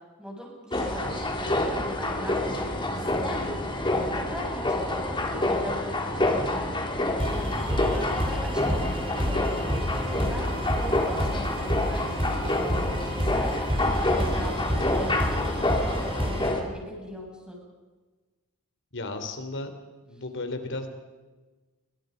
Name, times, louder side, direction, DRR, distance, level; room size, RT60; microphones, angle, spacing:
voice 1, 0.2-7.0 7.3-8.6 8.9-9.6 10.1-13.5 14.1-17.6, equal, 5° right, -2 dB, 7.4 m, -40 dB
sound 1, 0.7-16.6, left 1 dB, 20° left, 3.3 m, -28 dB
sound 2, 7.2-16.5, equal, 25° right, 3.8 m, -30 dB
voice 2, 18.9-19.7 20.1-20.9, left 2 dB, 55° left, 7 dB, 3.6 m, -34 dB
29.5 x 25.0 x 5.3 m, 1.3 s
head